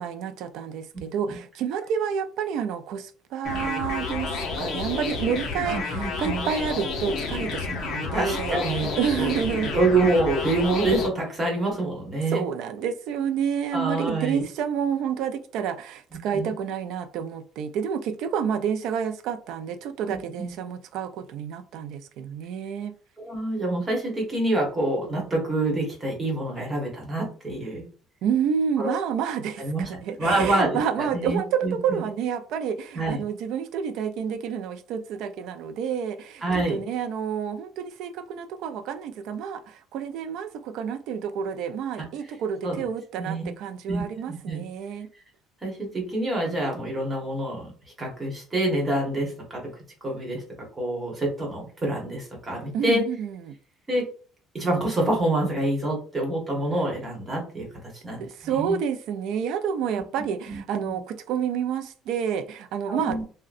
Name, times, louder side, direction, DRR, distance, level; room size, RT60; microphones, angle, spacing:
voice 1, 0.0-9.7 12.3-22.9 28.2-36.4 36.7-45.1 52.7-53.5 58.2-63.2, right 7 dB, 65° right, 0.4 m, -29 dB
sound 1, 3.4-11.1, left 4 dB, 50° left, 0.7 m, -30 dB
voice 2, 5.6-6.5 8.1-9.3 9.6-12.4 13.7-14.4 16.1-16.5 20.1-20.5 23.2-27.9 28.8-29.0 29.6-29.9 30.2-32.1 32.9-33.2 36.4-36.8 42.0-42.1 42.6-42.8 43.2-43.5 43.9-44.6 45.6-47.7 48.0-49.6 50.0-50.4 50.8-53.1 53.9-54.1 54.5-57.7 58.0-58.8 59.9-61.0 62.9-63.2, right 2 dB, 15° right, 1.1 m, -27 dB
3.7 x 2.1 x 2.5 m
cardioid pair, 160°, 0 cm